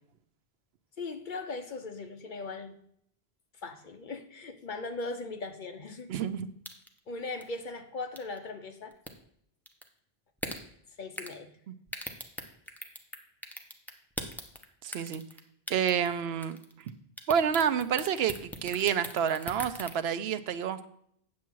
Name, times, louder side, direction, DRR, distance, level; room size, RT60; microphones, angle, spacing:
voice 1, 1.0-2.8 3.6-6.1 7.1-8.9 11.0-11.6, left 3 dB, 55° left, 7 dB, 0.9 m, -39 dB
voice 2, 6.1-6.5 11.7-11.8 14.8-15.2 15.7-16.6 16.9-17.0 17.3-20.9, right 8 dB, 85° right, 13 dB, 0.9 m, -29 dB
sound 1, 6.6-7.0 7.4-7.5 8.2-8.4 8.9-9.1 9.7-9.9 10.4-10.6 11.2-11.4 11.9-13.2 13.4-14.6 14.9-15.4 15.7-16.1 16.4-16.9 17.2-19.9, equal, ahead, 0.8 m, -38 dB
8.6 x 7.1 x 4.6 m, 0.70 s
omnidirectional pair, 1.0 m